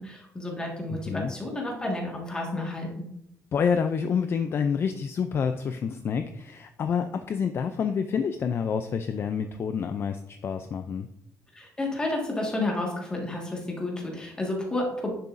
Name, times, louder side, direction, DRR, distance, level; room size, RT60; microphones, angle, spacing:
voice 1, 0.0-3.1 11.5-15.1, left 2 dB, 15° left, -1 dB, 1.7 m, -31 dB
voice 2, 0.9-1.3 3.5-11.1, left 6 dB, 35° left, 8 dB, 0.4 m, -28 dB
10.0 x 6.9 x 2.6 m, 0.77 s
cardioid pair, 170°, 7 cm